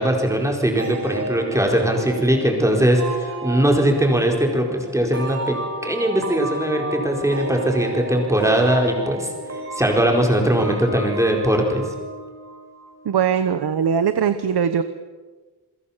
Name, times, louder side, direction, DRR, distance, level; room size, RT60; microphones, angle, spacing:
voice 1, 0.0-5.6 5.8-9.3 9.7-11.8, right 1 dB, 5° right, 1 dB, 4.5 m, -20 dB
sound 1, 0.8-13.2, right 2 dB, 40° right, 5.5 m, -32 dB
voice 2, 13.0-14.8, right 7 dB, 70° right, 11 dB, 1.1 m, -20 dB
29.0 x 22.0 x 7.4 m, 1.3 s
wide cardioid pair, 180°, 40 cm